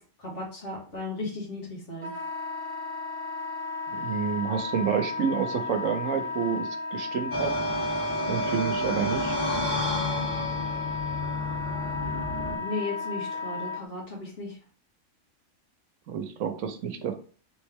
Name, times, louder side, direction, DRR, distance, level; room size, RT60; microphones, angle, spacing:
voice 1, 0.0-2.1 12.4-14.6, left 2 dB, 60° left, -3 dB, 1.8 m, -36 dB
Wind instrument woodwind instrument, 2.0-13.8, left 4 dB, 25° right, 0.9 m, -34 dB
voice 2, 3.9-7.5 8.3-9.4 16.1-17.1, right 7 dB, 80° right, 7 dB, 1.1 m, -29 dB
sound 1, 7.3-12.6, left 1 dB, 40° left, 1.1 m, -30 dB
3.7 x 3.1 x 3.4 m, 0.40 s
omnidirectional pair, 1.4 m